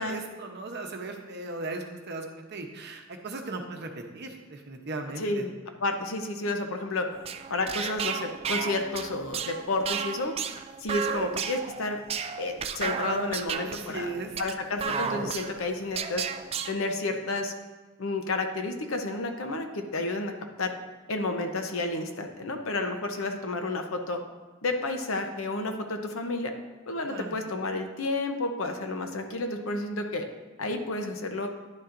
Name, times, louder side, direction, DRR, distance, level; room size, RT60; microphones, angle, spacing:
voice 1, 0.0-5.4 13.6-14.3 27.1-27.4, right 2 dB, 55° right, 3 dB, 0.9 m, -37 dB
voice 2, 5.2-5.5 5.8-7.1 7.5-10.3 10.8-12.0 12.4-14.1 14.4-16.2 16.7-17.5 18.0-20.3 20.6-20.8 21.1-24.2 24.6-26.5 26.9-30.2 30.6-31.5, left 2 dB, 70° left, 5 dB, 0.8 m, -31 dB
sound 1, 7.1-16.7, right 6 dB, 30° right, 0.3 m, -33 dB
10.5 x 6.9 x 2.6 m, 1.3 s
head